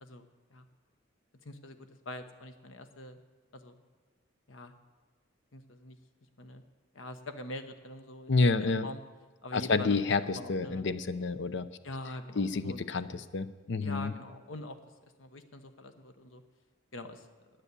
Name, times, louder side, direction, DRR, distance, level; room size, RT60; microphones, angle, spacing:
voice 1, 0.0-0.7 1.4-3.2 3.5-3.8 4.5-4.7 5.5-6.0 6.4-6.6 6.9-9.0 9.4-10.0 10.3-10.9 11.8-12.8 13.1-13.2 13.8-14.8 15.2-16.4 16.9-17.3, left 2 dB, 85° left, 8 dB, 1.1 m, -44 dB
voice 2, 8.3-8.9 9.5-11.7 12.4-14.1, left 3 dB, 65° left, 13 dB, 0.6 m, -29 dB
10.0 x 9.5 x 8.2 m, 1.4 s
head